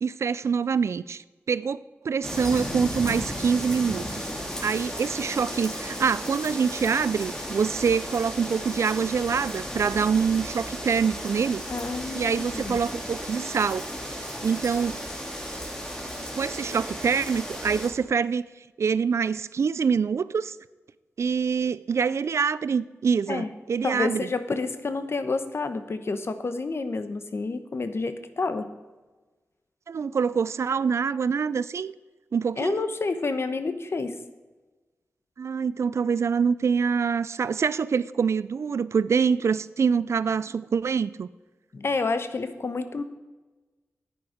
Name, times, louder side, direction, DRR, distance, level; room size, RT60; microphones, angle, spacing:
voice 1, 0.0-1.8 2.0-4.3 4.6-11.6 12.1-13.9 14.4-15.0 16.4-18.4 18.8-20.6 21.2-24.3 29.9-31.9 32.3-32.9 35.4-41.3, right 6 dB, 65° right, 0.4 m, -25 dB
sound 1, 2.2-17.9, equal, 15° left, 2.8 m, -34 dB
voice 2, 11.7-12.8 23.3-23.5 23.8-28.7 32.6-34.2 41.7-43.0, left 3 dB, 55° left, 1.0 m, -29 dB
10.5 x 9.3 x 5.0 m
cardioid pair, 55°, 5 cm